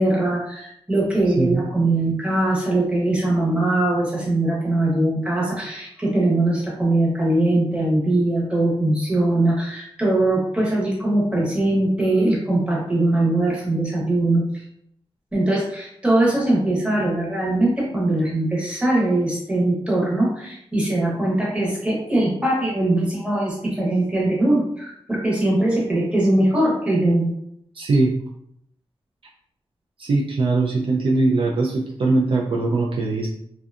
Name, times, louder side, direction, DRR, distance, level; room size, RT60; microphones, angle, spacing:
voice 1, 0.0-14.6 15.3-27.3, right 1 dB, 10° right, -4 dB, 0.8 m, -21 dB
voice 2, 27.7-28.1 30.0-33.3, right 3 dB, 60° right, -2 dB, 0.4 m, -21 dB
2.7 x 2.2 x 2.4 m, 0.74 s
wide cardioid pair, 115°, 10 cm